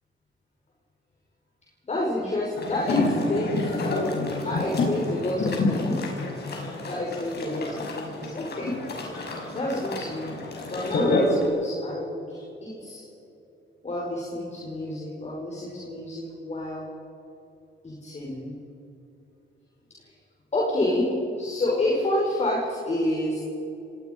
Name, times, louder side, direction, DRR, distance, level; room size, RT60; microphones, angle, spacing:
voice 1, 1.9-3.8 4.4-6.1 6.8-8.8 9.5-10.4 10.7-13.0 13.8-16.9 17.8-18.5 20.0-20.1 20.5-23.4, left 1 dB, 35° left, -3 dB, 5.5 m, -29 dB
sound 1, 2.6-11.5, left 2 dB, 55° left, 5.6 m, -28 dB
26.0 x 18.5 x 5.4 m, 2.8 s
cardioid pair, 90°, 20 cm